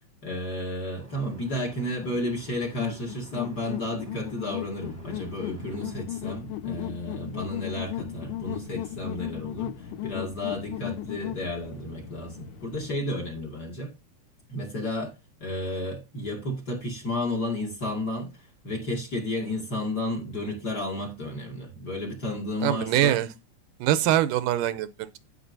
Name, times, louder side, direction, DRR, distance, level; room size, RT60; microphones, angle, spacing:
voice 1, 0.2-13.9 14.5-15.1 15.4-23.2, left 1 dB, 35° left, 2.2 m, -32 dB
sound 1, 0.9-6.0, right 1 dB, 5° right, 1.3 m, -51 dB
sound 2, 2.8-11.5, left 14 dB, 85° left, 2.3 m, -36 dB
sound 3, 4.8-12.9, left 4 dB, 60° left, 1.6 m, -45 dB
voice 2, 22.6-23.3 23.8-25.2, right 12 dB, 85° right, 2.2 m, -24 dB
15.5 x 5.7 x 2.7 m
omnidirectional pair, 3.9 m